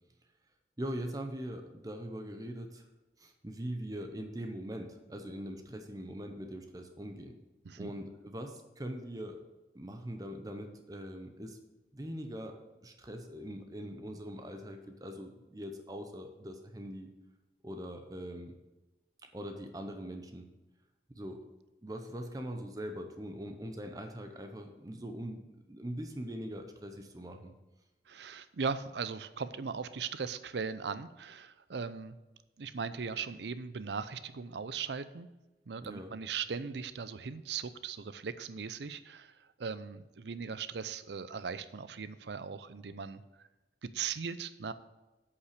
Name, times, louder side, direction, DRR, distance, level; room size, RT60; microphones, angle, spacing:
voice 1, 0.8-2.9 3.2-7.3 7.8-9.4 9.7-11.6 11.9-17.1 17.6-18.6 19.3-20.5 21.2-21.5 21.8-27.5 35.8-36.1, equal, 20° right, 5 dB, 0.7 m, -42 dB
voice 2, 28.1-32.2 32.6-35.3 35.7-43.5 43.8-44.7, right 5 dB, 75° right, 13 dB, 0.5 m, -39 dB
8.2 x 5.5 x 6.6 m, 1.1 s
head